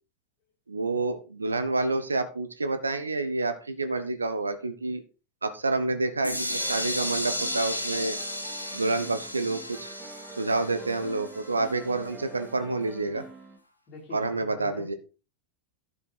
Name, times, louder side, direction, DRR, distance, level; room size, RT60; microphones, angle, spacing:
voice 1, 0.7-5.0 5.4-8.2 8.7-9.9 10.4-13.2 14.1-14.9, right 3 dB, 80° right, 10 dB, 1.0 m, -28 dB
sound 1, 6.2-12.1, left 1 dB, 85° left, 1.6 m, -34 dB
sound 2, 6.5-13.6, right 3 dB, 15° right, 2.8 m, -46 dB
voice 2, 13.9-15.0, left 3 dB, 35° left, 0 dB, 4.1 m, -45 dB
11.5 x 6.9 x 4.3 m, 0.32 s
figure-of-eight pair, 90°, 0 cm